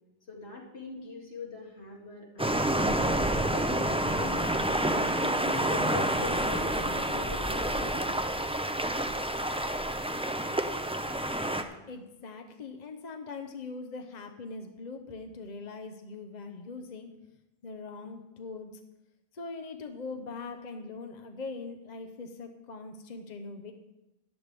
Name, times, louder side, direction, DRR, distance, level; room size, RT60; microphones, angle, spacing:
voice 1, 0.3-3.0 3.5-4.5 5.1-8.1, left 3 dB, 80° left, -2 dB, 2.5 m, -42 dB
sound 1, 2.4-11.6, right 1 dB, 5° right, 0.5 m, -28 dB
voice 2, 11.9-17.1 17.6-18.7 19.3-23.7, left 4 dB, 45° left, 5 dB, 0.9 m, -41 dB
14.0 x 10.5 x 3.4 m, 0.95 s
omnidirectional pair, 1.0 m